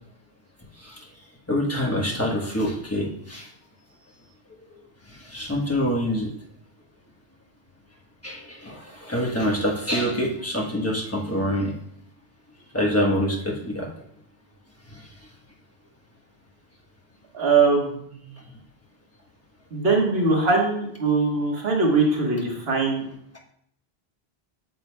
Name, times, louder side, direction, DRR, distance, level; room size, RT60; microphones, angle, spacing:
voice 1, 1.5-3.5 5.1-6.3 8.2-11.7 12.7-13.9 14.9-15.0, equal, 15° left, -2 dB, 1.1 m, -26 dB
voice 2, 17.3-18.4 19.7-23.0, right 4 dB, 70° right, -1 dB, 1.7 m, -22 dB
8.6 x 6.8 x 2.3 m, 0.67 s
omnidirectional pair, 1.1 m